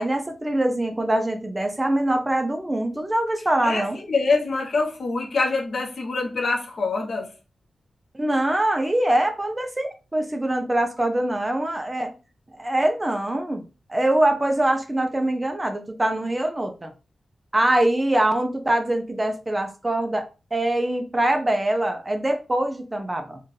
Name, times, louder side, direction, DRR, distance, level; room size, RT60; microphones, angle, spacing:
voice 1, 0.0-4.0 8.1-12.1 12.5-13.6 13.9-16.9 17.5-23.4, right 1 dB, 20° right, 0.6 m, -23 dB
voice 2, 3.6-7.3, left 3 dB, 65° left, 1.1 m, -25 dB
4.4 x 2.5 x 3.2 m
wide cardioid pair, 105°, 0 cm